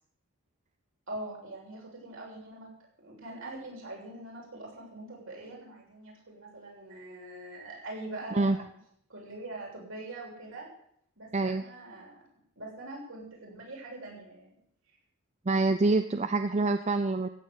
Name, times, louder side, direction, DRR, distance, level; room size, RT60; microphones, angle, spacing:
voice 1, 1.1-2.7 3.0-8.7 9.1-10.7 11.2-12.2 12.6-14.5, right 2 dB, 65° right, -2 dB, 7.2 m, -43 dB
voice 2, 11.3-11.6 15.5-17.3, right 3 dB, 30° right, 9 dB, 0.5 m, -26 dB
15.5 x 8.7 x 8.4 m, 0.68 s
head